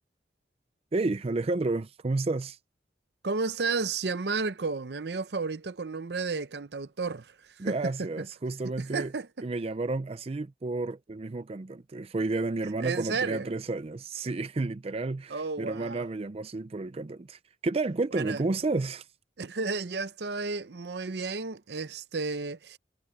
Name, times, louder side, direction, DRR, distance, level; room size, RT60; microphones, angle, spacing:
voice 1, 0.9-2.6 7.6-9.1 9.4-19.1, right 3 dB, 35° right, 0.5 m, -31 dB
voice 2, 3.2-8.3 8.8-9.5 12.8-13.5 15.3-16.1 18.1-18.4 19.4-22.8, right 4 dB, 65° right, 0.7 m, -32 dB
head